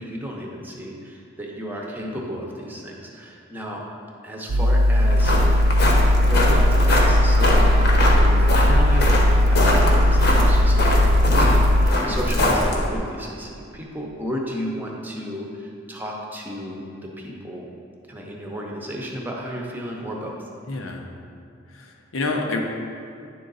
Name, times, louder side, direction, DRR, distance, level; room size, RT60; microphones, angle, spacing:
voice 1, 0.0-3.8 4.2-5.3 6.2-17.7 18.1-20.4, equal, 10° right, -2 dB, 0.7 m, -33 dB
sound 1, 4.5-11.9, left 1 dB, 75° right, 0.4 m, -18 dB
sound 2, 5.0-13.0, left 1 dB, 55° left, 1.0 m, -21 dB
voice 2, 20.7-21.0 21.7-22.6, left 3 dB, 90° left, 2 dB, 0.8 m, -29 dB
9.8 x 3.8 x 3.9 m, 2.4 s
head